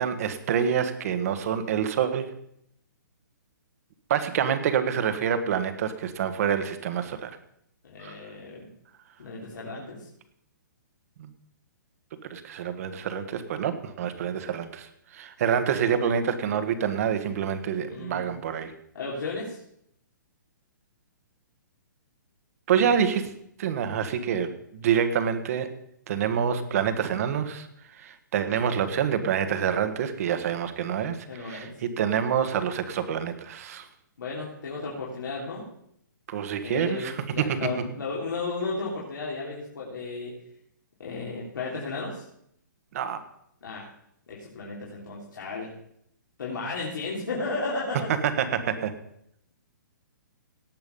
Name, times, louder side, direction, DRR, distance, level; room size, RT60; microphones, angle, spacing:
voice 1, 0.0-2.3 4.1-7.3 8.0-8.2 11.2-11.3 12.2-18.7 22.7-23.3 23.6-24.5 24.8-25.7 26.1-27.7 28.0-33.9 36.3-37.6 42.9-43.2 48.2-48.9, right 8 dB, 50° right, 10 dB, 1.4 m, -27 dB
voice 2, 7.8-8.7 9.2-10.1 17.9-18.2 18.9-19.6 22.8-22.9 31.3-31.7 34.2-35.7 36.6-40.3 41.0-42.2 43.6-43.9 44.3-45.7 46.4-48.1, left 3 dB, 80° left, -5 dB, 3.4 m, -34 dB
18.0 x 6.9 x 5.5 m, 0.73 s
hypercardioid pair, 155°, 11 cm